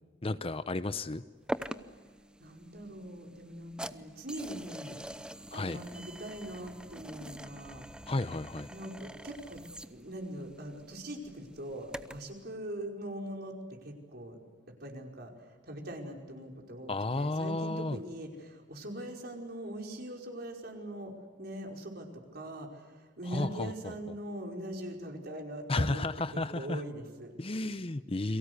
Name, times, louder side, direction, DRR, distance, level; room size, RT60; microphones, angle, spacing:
voice 1, 0.2-1.2 5.5-5.8 8.1-8.7 16.9-18.0 23.3-23.9 25.7-26.8 27.4-28.4, left 2 dB, 30° left, 13 dB, 0.7 m, -32 dB
sound 1, 1.5-12.4, right 1 dB, 5° right, 0.8 m, -45 dB
voice 2, 2.4-5.0 5.2-7.8 8.7-14.4 14.7-26.0 26.3-27.3, right 1 dB, 55° right, 2 dB, 5.2 m, -42 dB
29.5 x 23.5 x 8.2 m, 1.5 s
head